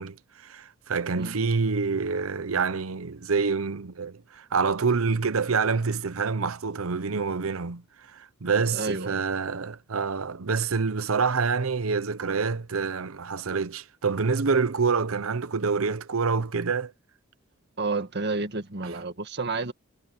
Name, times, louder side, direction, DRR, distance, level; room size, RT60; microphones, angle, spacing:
voice 1, 0.0-7.8 8.1-16.9, right 5 dB, 90° right, 0.8 m, -27 dB
voice 2, 8.7-9.2 17.8-19.7, right 3 dB, 55° right, 1.9 m, -30 dB
head